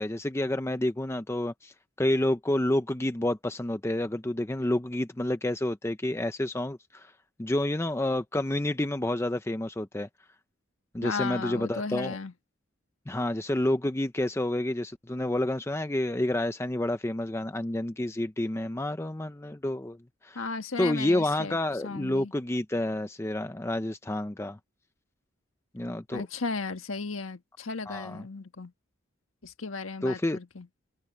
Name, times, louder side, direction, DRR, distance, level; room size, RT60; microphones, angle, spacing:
voice 1, 0.0-7.1 7.4-10.1 10.9-12.2 13.1-20.0 20.2-20.5 20.8-24.6 25.7-26.2 27.9-28.3 30.0-30.4, left 1 dB, 15° left, 0.5 m, -29 dB
voice 2, 11.0-12.3 20.3-21.6 21.8-22.3 26.1-28.7 29.4-30.7, left 4 dB, 80° left, 1.5 m, -35 dB
head